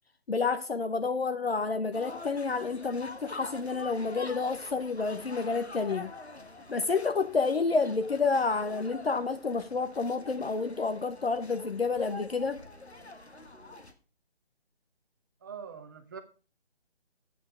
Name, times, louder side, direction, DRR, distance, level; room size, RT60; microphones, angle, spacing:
voice 1, 0.3-6.1 6.7-12.6, left 4 dB, 70° left, 0.9 m, -29 dB
sound 1, 1.9-13.9, left 2 dB, 85° left, 1.5 m, -45 dB
voice 2, 15.4-16.2, right 7 dB, 20° right, 0.8 m, -43 dB
8.5 x 8.5 x 5.2 m
figure-of-eight pair, 145°, 32 cm